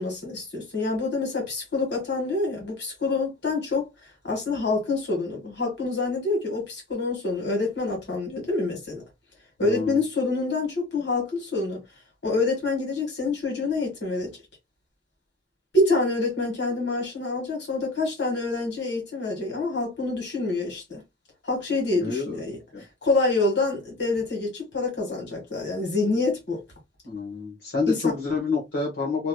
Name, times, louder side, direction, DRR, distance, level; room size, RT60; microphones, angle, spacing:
voice 1, 0.0-3.9 4.2-9.0 9.6-11.8 12.2-14.3 15.7-21.0 21.4-22.6 23.0-26.6 27.9-28.1, left 3 dB, 75° left, 1.7 m, -26 dB
voice 2, 9.6-10.0 21.9-22.4 22.7-22.8 27.0-29.3, left 4 dB, 90° left, 1.2 m, -28 dB
3.2 x 2.9 x 2.2 m
head